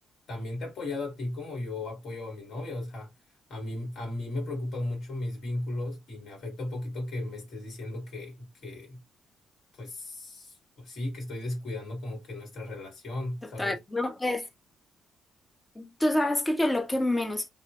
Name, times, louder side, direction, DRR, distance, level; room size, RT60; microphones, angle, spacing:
voice 1, 0.3-3.1 3.5-9.0 9.7-13.8, left 2 dB, 60° left, 1.3 m, -36 dB
voice 2, 13.6-14.5 15.8-17.5, left 1 dB, 15° left, 0.4 m, -27 dB
2.2 x 2.1 x 2.7 m
cardioid pair, 130°, 0 cm